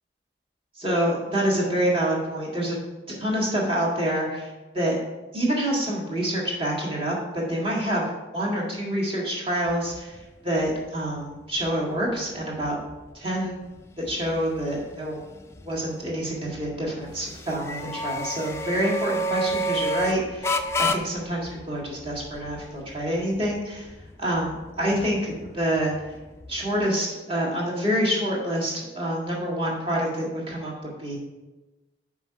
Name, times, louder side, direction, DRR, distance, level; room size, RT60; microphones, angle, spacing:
voice 1, 0.8-2.8 3.1-5.0 5.3-8.1 8.3-12.8 13.1-13.6 14.0-15.2 15.6-23.9 24.2-25.9 26.5-31.2, equal, 30° right, -4 dB, 1.8 m, -27 dB
sound 1, 9.7-26.9, equal, 15° left, 0.3 m, -33 dB
5.7 x 4.9 x 5.7 m, 1.1 s
head